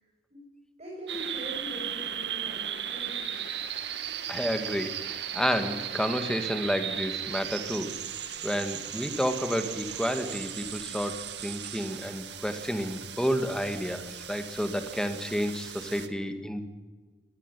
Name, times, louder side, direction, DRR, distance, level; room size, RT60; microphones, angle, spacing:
voice 1, 0.8-3.4, equal, 40° right, -3 dB, 6.8 m, -42 dB
sound 1, 1.1-16.1, right 9 dB, 75° right, 2.0 m, -37 dB
voice 2, 4.3-7.9 8.4-16.6, equal, 5° left, 7 dB, 2.0 m, -30 dB
22.0 x 19.5 x 10.0 m, 1.3 s
head